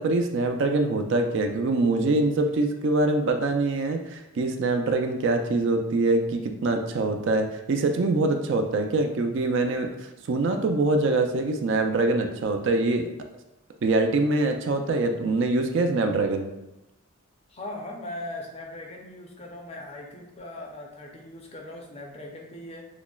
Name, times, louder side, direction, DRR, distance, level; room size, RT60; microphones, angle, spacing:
voice 1, 0.0-9.9 10.3-13.1 13.8-16.5, right 2 dB, 55° right, 5 dB, 0.3 m, -24 dB
voice 2, 17.5-22.8, left 1 dB, 30° left, 1 dB, 0.5 m, -39 dB
6.0 x 2.0 x 2.3 m, 0.94 s
head